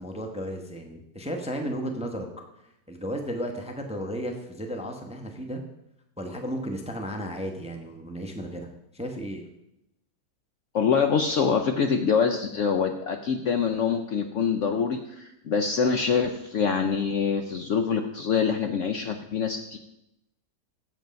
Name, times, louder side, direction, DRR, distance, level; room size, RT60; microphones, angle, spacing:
voice 1, 0.0-2.3 2.9-5.6 6.2-8.7 8.9-9.4, equal, 5° right, 4 dB, 0.7 m, -34 dB
voice 2, 10.7-19.8, left 6 dB, 65° left, 6 dB, 0.8 m, -25 dB
7.9 x 7.7 x 5.2 m, 0.84 s
omnidirectional pair, 1.7 m